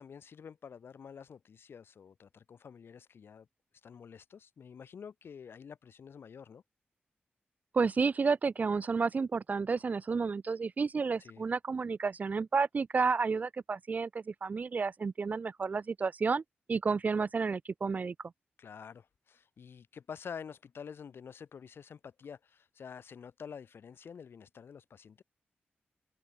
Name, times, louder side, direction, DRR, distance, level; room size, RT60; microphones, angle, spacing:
voice 1, 0.0-3.5 3.8-6.6 11.2-11.4 18.6-25.2, left 7 dB, 75° left, 2.4 m, -48 dB
voice 2, 7.7-16.4 16.7-18.1, right 4 dB, 45° right, 0.4 m, -31 dB
open air
wide cardioid pair, 95°, 4 cm